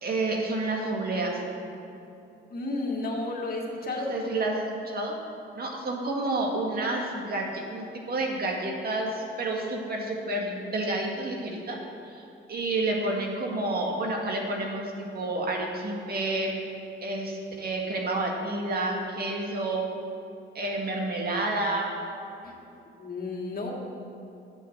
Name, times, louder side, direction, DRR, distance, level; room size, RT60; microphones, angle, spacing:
voice 1, 0.0-1.4 3.8-5.1 5.5-11.8 12.0-12.2 12.5-16.5 17.0-19.9 20.5-21.9 23.6-23.7, right 2 dB, 50° right, 0 dB, 1.9 m, -29 dB
voice 2, 2.5-4.1 23.0-23.7, left 2 dB, 50° left, -1 dB, 2.0 m, -32 dB
8.4 x 7.4 x 7.2 m, 2.7 s
cardioid pair, 90°, 20 cm